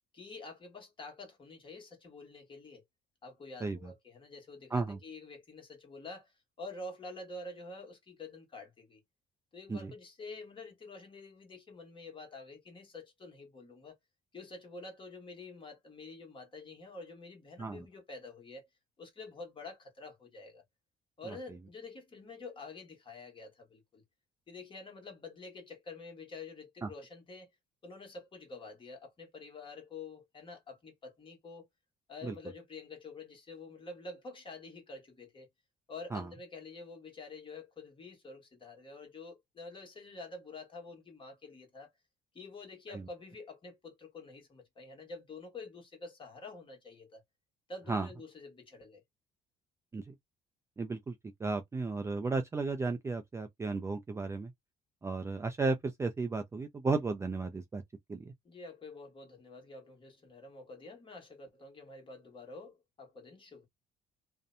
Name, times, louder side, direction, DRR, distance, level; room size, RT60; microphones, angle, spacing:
voice 1, 0.1-2.8 3.2-9.0 9.5-14.0 14.3-18.7 19.0-20.6 21.2-24.0 24.5-27.5 27.8-31.7 32.1-35.5 35.9-41.9 42.3-47.2 47.7-49.0 58.4-63.7, left 3 dB, 30° left, 1.2 m, -48 dB
voice 2, 3.6-3.9 4.7-5.0 9.7-9.9 17.6-17.9 21.3-21.4 26.8-26.9 32.2-32.4 36.1-36.3 42.9-43.1 47.9-48.1 49.9-50.1 50.8-51.1 51.4-54.5 55.0-57.8 58.1-58.3, right 3 dB, 15° right, 0.3 m, -34 dB
2.6 x 2.1 x 2.5 m
cardioid pair, 110°, 17 cm